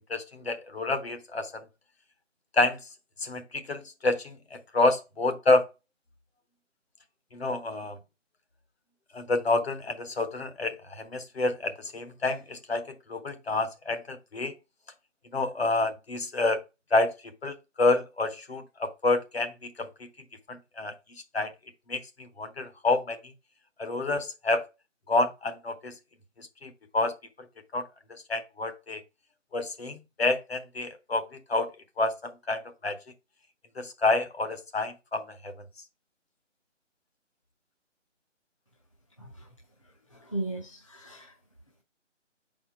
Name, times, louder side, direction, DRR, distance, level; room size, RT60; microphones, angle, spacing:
voice 1, 0.1-1.5 2.5-2.8 3.2-5.6 7.3-8.0 9.1-14.5 15.3-16.6 16.9-17.1 17.4-19.9 20.5-20.9 21.3-21.5 21.9-23.2 23.8-24.6 25.1-25.9 26.4-27.2 27.7-27.9 28.3-29.0 29.5-31.7 32.0-33.0 33.8-35.5, left 2 dB, 55° left, 1.0 m, -28 dB
voice 2, 40.1-41.3, right 2 dB, 25° left, 0.6 m, -37 dB
6.7 x 4.3 x 4.5 m
figure-of-eight pair, 165°, 38 cm